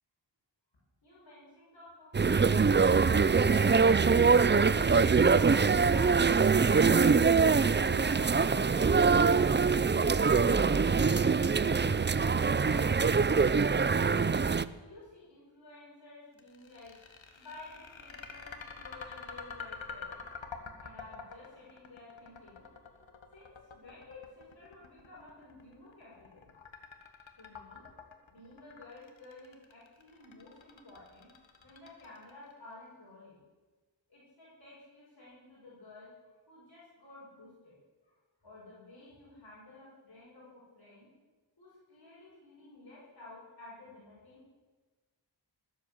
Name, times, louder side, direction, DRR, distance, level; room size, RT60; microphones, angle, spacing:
voice 1, 1.0-3.1 10.4-10.8 11.2-14.0 14.8-16.9 17.4-20.2 20.8-22.6 23.3-26.5 27.4-27.8 28.3-31.3 31.6-33.4 34.1-37.8 38.0-38.1 38.4-41.1 41.6-44.5, left 2 dB, 55° left, -9 dB, 6.3 m, -53 dB
sound 1, 2.1-14.6, right 5 dB, 25° right, 0.5 m, -24 dB
sound 2, 16.4-32.5, left 5 dB, 80° left, 1.8 m, -47 dB
20.5 x 8.4 x 7.8 m, 1.3 s
wide cardioid pair, 65°, 46 cm